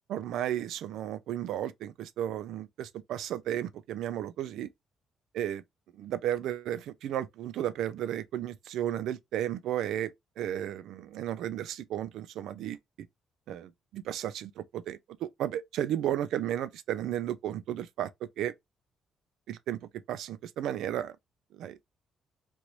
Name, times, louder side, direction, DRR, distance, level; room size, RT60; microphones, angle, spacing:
voice 1, 0.1-4.7 5.3-5.6 6.0-12.8 13.5-18.1 18.4-18.5 19.5-19.8 20.1-21.2 21.5-21.8, right 11 dB, 85° right, 0.4 m, -34 dB
3.0 x 2.5 x 3.1 m
cardioid pair, 90°, 0 cm